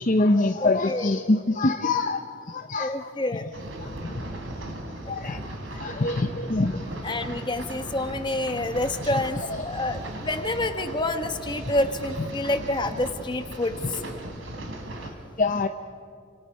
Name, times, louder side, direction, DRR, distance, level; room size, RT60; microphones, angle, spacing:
voice 1, 0.0-3.1 3.8-4.2 5.1-6.9 9.6-9.7 15.4-15.7, left 2 dB, 40° left, 6 dB, 0.7 m, -25 dB
voice 2, 0.6-1.1 2.8-3.5 5.2-5.4 7.0-9.4 9.6-14.0, left 1 dB, 20° left, 8 dB, 1.2 m, -28 dB
sound 1, 3.5-15.1, right 1 dB, 65° right, 3.3 m, -37 dB
30.0 x 26.5 x 5.5 m, 2.5 s
head